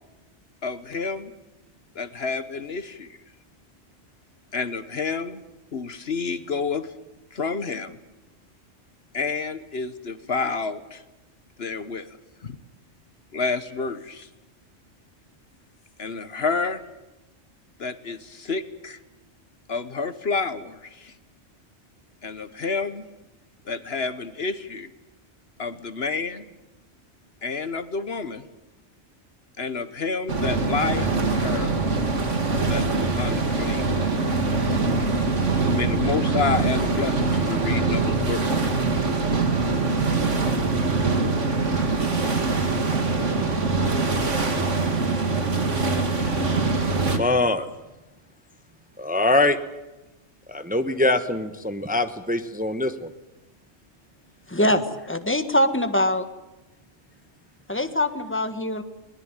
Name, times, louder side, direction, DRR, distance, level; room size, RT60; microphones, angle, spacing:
voice 1, 0.6-1.3 1.9-3.2 4.5-5.4 5.7-6.9 7.3-8.0 9.1-11.0 11.6-12.1 12.4-12.6 13.3-14.3 16.0-16.8 17.8-19.0 19.7-21.1 22.2-23.1 23.7-24.9 25.6-26.5 27.4-28.5 29.6-31.7 32.7-33.9 35.7-38.5, left 4 dB, 60° left, 12 dB, 1.4 m, -29 dB
sound 1, 30.3-47.2, right 3 dB, 90° right, 2.6 m, -23 dB
voice 2, 47.0-47.7 49.0-49.6 50.5-53.1, left 2 dB, 10° right, 9 dB, 1.0 m, -23 dB
voice 3, 54.5-56.2 57.7-58.8, left 1 dB, 10° left, 9 dB, 1.5 m, -23 dB
22.0 x 20.0 x 9.0 m, 1.0 s
omnidirectional pair, 1.2 m